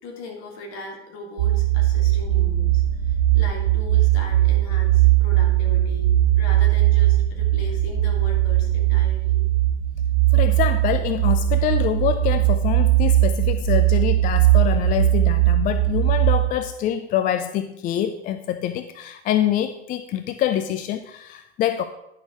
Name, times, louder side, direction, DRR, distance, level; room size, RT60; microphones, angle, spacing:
voice 1, 0.0-9.4, left 1 dB, 50° left, 1 dB, 3.0 m, -39 dB
sound 1, 1.4-16.5, right 14 dB, 65° right, 2.1 m, -19 dB
voice 2, 10.3-21.8, left 11 dB, 25° left, 10 dB, 0.4 m, -25 dB
10.5 x 6.3 x 4.6 m, 0.87 s
hypercardioid pair, 95°, 34 cm